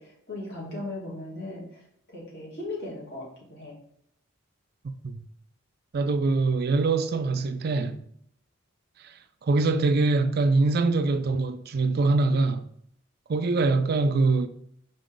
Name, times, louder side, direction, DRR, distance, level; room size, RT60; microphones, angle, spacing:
voice 1, 0.0-1.8 2.1-3.8, left 2 dB, 50° left, 2.7 m, -37 dB
voice 2, 4.8-5.3 5.9-8.0 9.0-12.6 13.3-14.5, right 3 dB, 50° right, 0.4 m, -24 dB
5.3 x 5.1 x 3.8 m
head